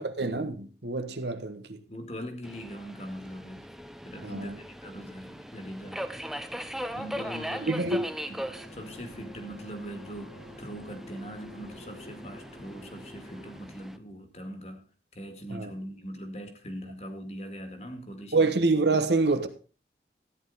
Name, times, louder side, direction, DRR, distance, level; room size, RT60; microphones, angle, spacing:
voice 1, 0.0-1.8 4.2-4.5 7.7-8.1 15.5-15.7 18.3-19.5, right 3 dB, 80° right, 1.3 m, -26 dB
voice 2, 1.9-3.7 4.0-6.3 7.0-8.0 8.3-8.4 8.7-18.6, equal, 40° left, 2.0 m, -41 dB
Subway metro underground, 2.4-14.0, equal, ahead, 0.5 m, -40 dB
sound 1, 8.3-13.6, equal, 85° left, 6.1 m, -50 dB
13.5 x 9.8 x 4.1 m
head